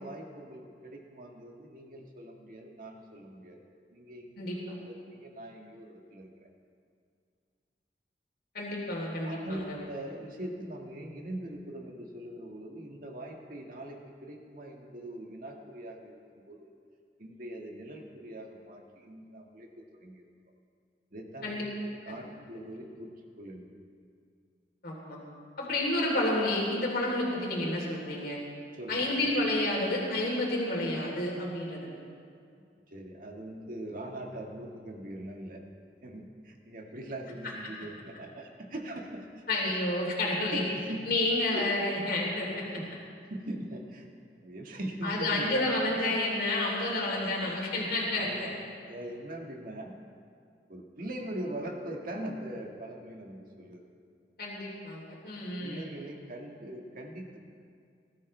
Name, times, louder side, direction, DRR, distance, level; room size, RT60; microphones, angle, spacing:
voice 1, 0.0-3.6 3.9-4.4 4.9-6.5 9.2-16.7 17.2-19.7 20.0-20.3 21.1-21.6 22.0-23.1 23.4-23.8 28.7-29.0 32.9-35.7 36.0-39.8 40.5-41.0 41.5-42.1 42.8-42.9 43.3-44.1 44.4-45.6 45.9-46.2 48.1-48.5 48.8-50.0 50.7-53.9 55.6-57.4, right 1 dB, 55° right, 1 dB, 1.7 m, -41 dB
voice 2, 4.4-4.7 8.5-9.8 21.4-21.6 22.1-22.2 24.8-25.2 25.6-28.4 28.9-31.9 39.5-40.6 41.1-42.6 45.0-48.5 54.4-55.9, left 1 dB, 60° left, -3 dB, 3.3 m, -30 dB
20.0 x 13.5 x 3.3 m, 2.3 s
head